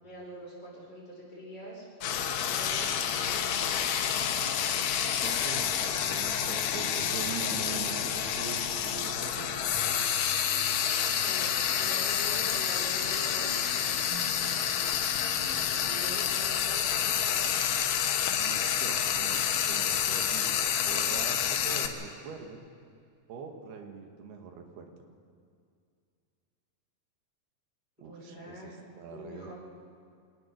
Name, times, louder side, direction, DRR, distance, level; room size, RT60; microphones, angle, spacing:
voice 1, 0.0-5.2 11.1-14.1 15.7-17.7 28.0-28.8 29.1-29.5, equal, 25° left, -5 dB, 6.5 m, -45 dB
Frying (food), 2.0-21.9, left 9 dB, 80° left, 3.1 m, -29 dB
voice 2, 5.2-9.5 18.4-22.6 23.3-24.9 28.0-29.5, right 5 dB, 90° right, 4 dB, 3.8 m, -43 dB
sound 1, 7.0-16.3, right 2 dB, 60° right, 1.4 m, -48 dB
25.0 x 18.5 x 6.4 m, 2.3 s
omnidirectional pair, 4.4 m